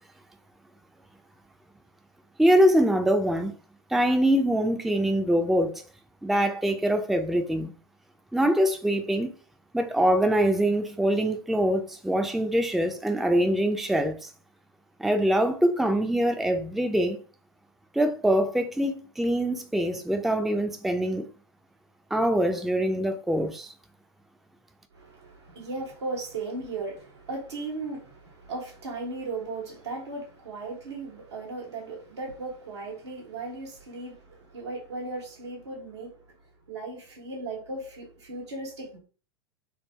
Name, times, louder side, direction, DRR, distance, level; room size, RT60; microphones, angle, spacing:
voice 1, 2.4-3.6 3.9-5.8 6.2-7.7 8.3-9.3 9.7-14.3 15.0-17.2 17.9-21.3 22.1-23.7, equal, ahead, 0.4 m, -24 dB
voice 2, 24.9-36.2 36.7-39.0, right 3 dB, 85° right, 1.4 m, -36 dB
3.4 x 2.1 x 3.2 m
hypercardioid pair, 90°, 14 cm